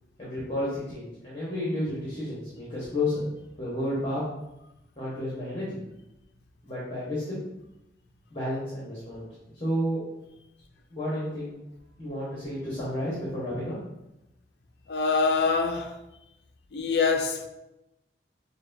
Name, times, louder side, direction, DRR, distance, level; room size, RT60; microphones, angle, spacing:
voice 1, 0.2-3.2 3.6-4.2 5.0-5.8 6.6-7.4 8.3-9.3 9.6-10.0 10.9-11.6 12.0-13.7, left 1 dB, 25° left, 1.2 m, -31 dB
voice 2, 14.9-16.0 16.7-17.5, left 4 dB, 60° left, 0.4 m, -25 dB
6.0 x 2.2 x 2.7 m
head